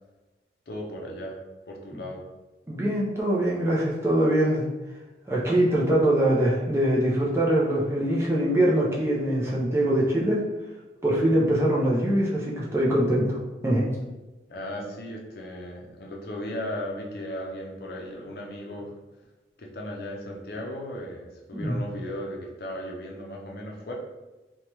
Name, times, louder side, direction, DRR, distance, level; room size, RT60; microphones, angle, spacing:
voice 1, 0.7-1.4 1.7-2.2 14.5-18.9 19.6-23.9, left 1 dB, 60° left, -1 dB, 0.5 m, -36 dB
voice 2, 2.7-4.6 5.3-10.4 11.0-13.3 13.6-13.9 21.5-21.8, right 1 dB, 15° right, -5 dB, 0.5 m, -23 dB
2.9 x 2.2 x 3.0 m, 1.1 s
head